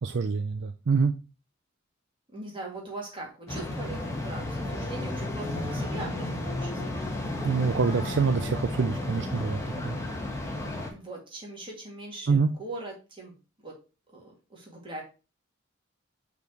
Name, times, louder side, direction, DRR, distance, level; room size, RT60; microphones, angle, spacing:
voice 1, 0.0-1.1 7.4-10.0 12.3-12.5, right 4 dB, 60° right, 9 dB, 0.4 m, -26 dB
voice 2, 2.3-7.0 10.9-13.4 13.6-13.7 14.1-15.0, right 2 dB, 25° right, -2 dB, 2.4 m, -41 dB
sound 1, 3.5-10.9, left 2 dB, 15° left, 1.3 m, -33 dB
5.7 x 4.5 x 4.5 m, 0.32 s
head